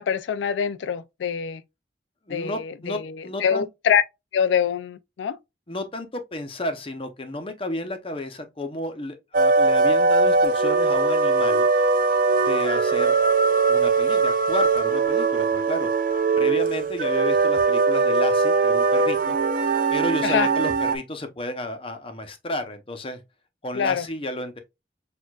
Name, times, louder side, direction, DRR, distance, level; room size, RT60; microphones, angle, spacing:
voice 1, 0.0-1.6 2.3-4.0 4.3-5.4 20.2-20.5 23.8-24.0, left 7 dB, 90° left, 0.3 m, -24 dB
voice 2, 2.3-3.7 5.7-11.7 12.5-13.2 13.7-19.4 19.9-23.2 23.6-24.6, left 1 dB, 30° left, 0.8 m, -32 dB
sound 1, 9.3-21.0, right 4 dB, 50° right, 0.5 m, -20 dB
6.3 x 2.5 x 2.3 m
head